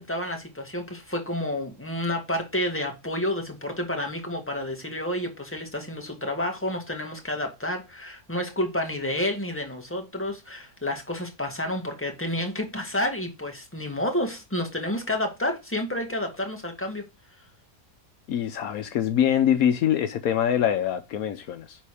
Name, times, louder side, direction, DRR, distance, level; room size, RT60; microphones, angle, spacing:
voice 1, 0.0-17.0, left 1 dB, 10° left, 2.1 m, -30 dB
voice 2, 18.3-21.8, left 9 dB, 75° left, 1.2 m, -24 dB
10.5 x 4.1 x 4.9 m
omnidirectional pair, 1.6 m